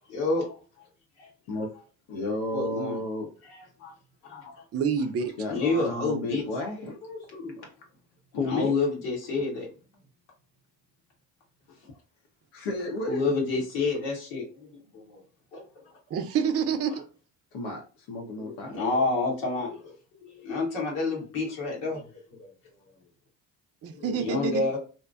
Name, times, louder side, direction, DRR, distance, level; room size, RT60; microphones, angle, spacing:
voice 1, 0.1-0.6 1.2-1.3 2.5-3.0 3.4-3.9 4.2-4.6 5.5-6.4 7.0-7.6 8.4-9.7 13.1-15.2 15.5-15.6 18.4-19.9 20.2-22.5 23.9-24.8, left 3 dB, 80° left, 1.1 m, -29 dB
voice 2, 2.1-3.3 5.4-7.0 7.6-7.7 8.3-8.7 12.5-13.3 17.5-18.8, left 2 dB, 60° left, 0.8 m, -32 dB
voice 3, 4.7-5.3 16.1-17.0 23.8-24.6, right 6 dB, 30° right, 0.5 m, -27 dB
2.7 x 2.1 x 2.2 m
hypercardioid pair, 50°, 47 cm